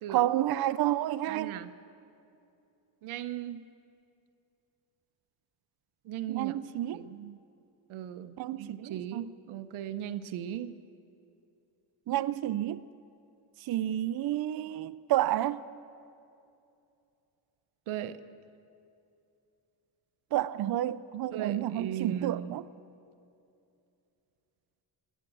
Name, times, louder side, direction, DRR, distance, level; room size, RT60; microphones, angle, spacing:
voice 1, 0.1-1.6 6.3-7.0 8.4-9.3 12.1-12.8 13.6-15.6 20.3-22.6, right 13 dB, 50° right, 0.5 m, -30 dB
voice 2, 1.3-1.7 3.0-3.7 6.0-6.5 6.9-7.4 7.9-10.8 17.9-18.2 21.3-22.6, right 10 dB, 85° right, 0.8 m, -37 dB
18.5 x 10.0 x 7.5 m
cardioid pair, 70°, 48 cm